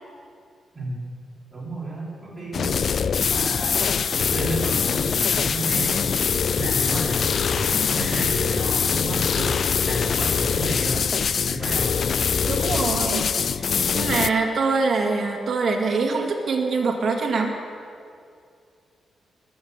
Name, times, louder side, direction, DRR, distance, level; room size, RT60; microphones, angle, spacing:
voice 1, 0.7-1.1 1.5-2.8 3.1-6.1 6.5-11.9, right 2 dB, 10° right, -6 dB, 4.4 m, -32 dB
sound 1, 2.5-14.3, left 6 dB, 45° left, 0.3 m, -23 dB
voice 2, 12.4-13.6 13.9-17.6, right 4 dB, 45° right, 1 dB, 2.1 m, -24 dB
20.5 x 7.2 x 8.2 m, 2.4 s
wide cardioid pair, 160°, 0 cm